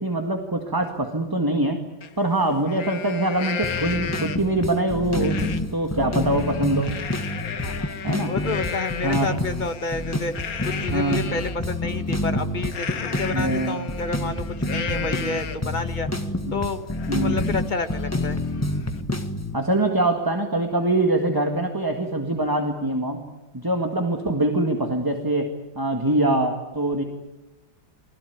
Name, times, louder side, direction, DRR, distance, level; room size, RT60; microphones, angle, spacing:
voice 1, 0.0-1.8 2.2-6.9 8.0-8.3 9.0-9.3 10.9-11.2 13.3-13.8 14.9-15.1 16.5-16.6 17.1-17.4 19.5-23.2 23.5-25.5 25.7-27.0, right 1 dB, 10° right, 4 dB, 1.6 m, -23 dB
Livestock farm animals working animals, 2.0-2.1 2.5-4.6 5.2-5.6 6.0-11.6 12.7-15.8 16.2-16.3 16.6-19.0, left 7 dB, 50° left, 1.6 m, -34 dB
sound 1, 3.6-19.5, left 1 dB, 10° left, 1.3 m, -28 dB
voice 2, 7.6-7.9 8.3-10.3 10.6-16.1 16.5-18.4, left 4 dB, 25° left, 8 dB, 1.5 m, -30 dB
29.5 x 20.5 x 9.4 m, 1.0 s
omnidirectional pair, 2.2 m